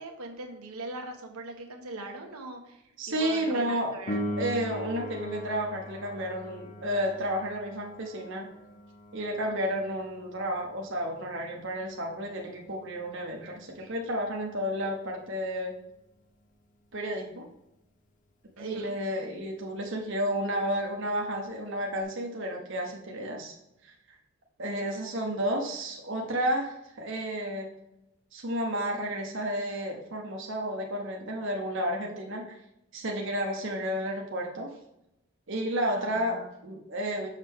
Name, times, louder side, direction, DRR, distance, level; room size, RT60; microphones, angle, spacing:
voice 1, 0.0-4.3 9.5-9.8 18.6-18.9 24.6-25.0 35.9-36.5, right 2 dB, 85° right, 2 dB, 1.2 m, -41 dB
voice 2, 3.0-4.0 4.4-8.5 9.1-15.7 16.9-17.5 18.6-23.6 23.8-23.9 24.6-27.7 28.3-32.5 32.9-34.7 35.5-37.3, equal, 55° right, 0 dB, 1.0 m, -31 dB
Piano, 4.1-14.5 22.0-22.1, equal, 35° left, 0.6 m, -41 dB
6.5 x 5.8 x 3.6 m, 0.86 s
head